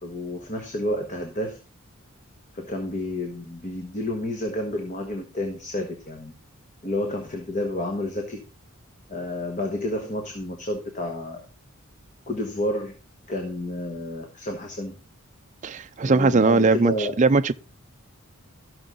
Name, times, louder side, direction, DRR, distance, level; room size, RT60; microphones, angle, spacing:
voice 1, 0.0-1.6 2.5-6.3 6.8-8.4 9.1-11.4 12.3-12.9 13.3-14.9 16.0-17.1, left 1 dB, 35° left, 1.4 m, -30 dB
voice 2, 15.6-17.5, right 4 dB, 35° right, 0.4 m, -20 dB
13.5 x 6.3 x 3.9 m
head